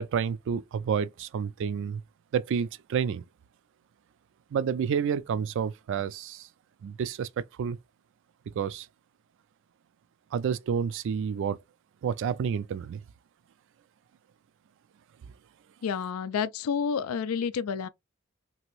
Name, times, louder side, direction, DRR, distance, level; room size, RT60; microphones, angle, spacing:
voice 1, 0.0-2.0 2.3-3.2 4.5-6.5 6.8-7.3 7.6-7.8 8.5-8.9 10.3-11.6 12.0-13.0, right 7 dB, 60° right, 0.3 m, -29 dB
voice 2, 15.8-17.9, left 6 dB, 90° left, 0.3 m, -29 dB
2.9 x 2.6 x 3.0 m
head